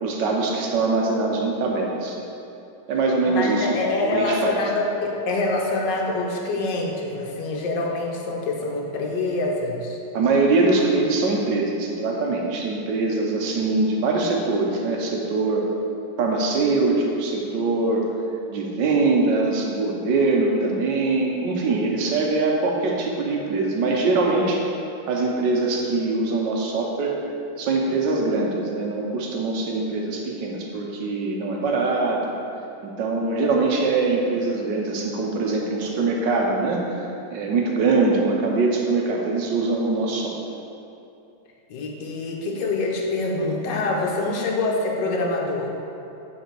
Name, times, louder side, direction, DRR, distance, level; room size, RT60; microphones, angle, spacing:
voice 1, 0.0-2.2 2.9-3.7 4.1-4.5 10.1-15.7 16.2-18.1 18.5-24.6 25.1-27.2 27.6-32.3 32.8-40.3, right 3 dB, 85° right, 0 dB, 1.5 m, -23 dB
voice 2, 3.2-10.0 41.7-45.7, left 2 dB, 85° left, 0 dB, 1.5 m, -25 dB
9.2 x 4.0 x 4.5 m, 2.7 s
omnidirectional pair, 1.9 m